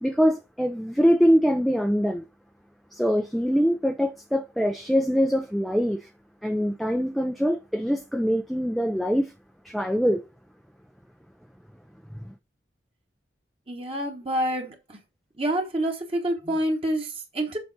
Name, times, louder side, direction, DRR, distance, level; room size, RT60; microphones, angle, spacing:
voice 1, 0.0-2.2 2.9-6.1 6.4-9.3 9.6-10.2 12.2-12.3, equal, ahead, 0.4 m, -23 dB
voice 2, 13.7-15.0 15.4-17.6, right 1 dB, 30° right, 1.2 m, -27 dB
7.1 x 4.9 x 4.0 m
head